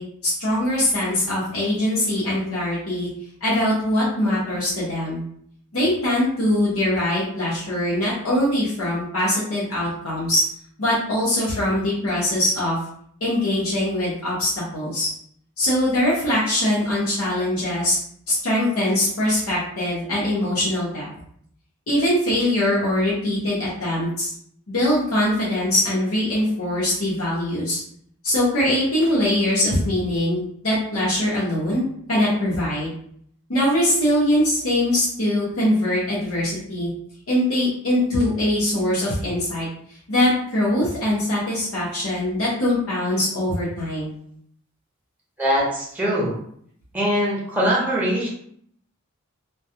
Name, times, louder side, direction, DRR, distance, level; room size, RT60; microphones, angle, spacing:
voice 1, 0.0-3.1 3.4-5.2 5.7-10.4 10.8-12.8 13.2-15.1 15.6-18.0 18.3-21.1 21.9-24.3 24.7-27.8 28.2-31.8 32.1-32.9 33.5-36.9 37.3-39.7 40.1-44.2, left 1 dB, 70° left, -9 dB, 0.9 m, -22 dB
voice 2, 45.4-46.4 46.9-48.3, equal, 10° right, -5 dB, 0.7 m, -22 dB
2.3 x 2.2 x 2.7 m, 0.64 s
head